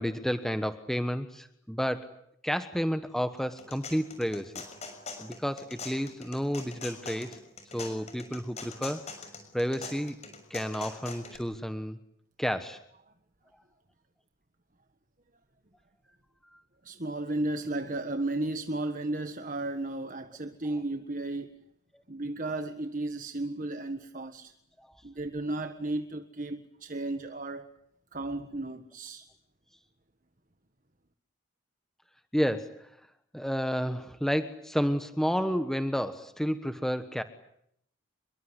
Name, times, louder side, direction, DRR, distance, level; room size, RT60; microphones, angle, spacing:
voice 1, 0.0-2.1 2.4-4.6 5.2-7.4 7.7-9.1 9.5-10.2 10.5-12.0 12.4-12.8 24.8-24.9 32.3-32.9 33.3-37.2, equal, ahead, 1.2 m, -31 dB
sound 1, 3.4-11.4, left 4 dB, 30° left, 6.3 m, -43 dB
voice 2, 16.8-21.5 22.1-24.5 25.0-27.7 28.1-29.3, right 2 dB, 40° right, 1.5 m, -34 dB
28.5 x 23.0 x 8.2 m
head